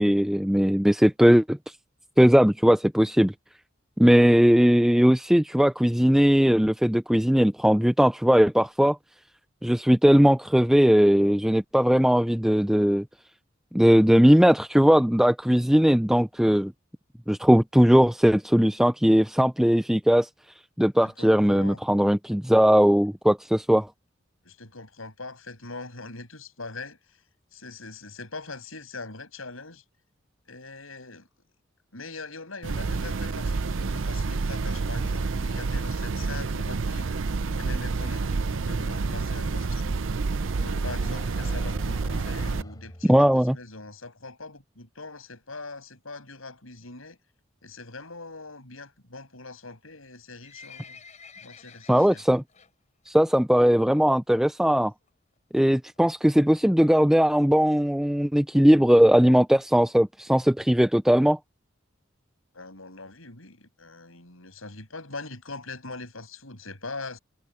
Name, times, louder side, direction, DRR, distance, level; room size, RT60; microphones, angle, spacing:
voice 1, 0.0-1.6 2.2-3.3 4.0-9.0 9.6-13.0 13.7-16.7 17.3-20.3 20.8-23.9 43.1-43.6 51.9-52.4 53.1-54.9 55.5-61.4, equal, ahead, 0.4 m, -19 dB
voice 2, 21.0-21.8 24.4-27.0 27.5-29.8 30.5-31.3 31.9-37.1 37.6-40.0 40.6-47.2 47.6-51.0 51.4-52.2 62.5-67.2, left 3 dB, 85° left, 7.8 m, -42 dB
sound 1, 32.6-42.6, right 4 dB, 65° right, 0.6 m, -28 dB
sound 2, 39.6-43.7, left 1 dB, 20° left, 5.3 m, -46 dB
Livestock farm animals working animals, 50.0-52.7 53.1-53.3 53.6-53.7 54.4-54.5 54.8-54.9 55.1-55.2 55.7-56.0 56.6-56.7 56.9-57.0 57.1-57.2 57.5-57.6 58.0-58.1 58.6-58.7 59.1-59.2, left 5 dB, 35° left, 4.6 m, -49 dB
head